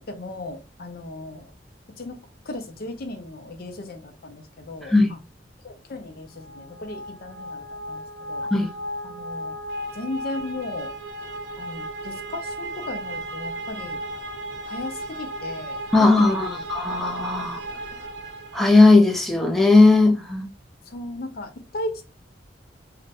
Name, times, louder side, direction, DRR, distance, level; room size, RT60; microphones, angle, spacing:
voice 1, 0.0-1.5 2.0-5.2 5.6-8.4 9.0-9.6 9.9-10.9 11.6-14.0 14.6-16.6 16.9-17.0 20.9-22.0, left 2 dB, 55° left, 0.5 m, -36 dB
voice 2, 4.8-5.1 8.5-8.7 15.9-17.6 18.5-20.5, left 3 dB, ahead, 0.4 m, -17 dB
sound 1, 6.4-19.2, right 1 dB, 70° right, 0.5 m, -35 dB
2.5 x 2.1 x 4.0 m
head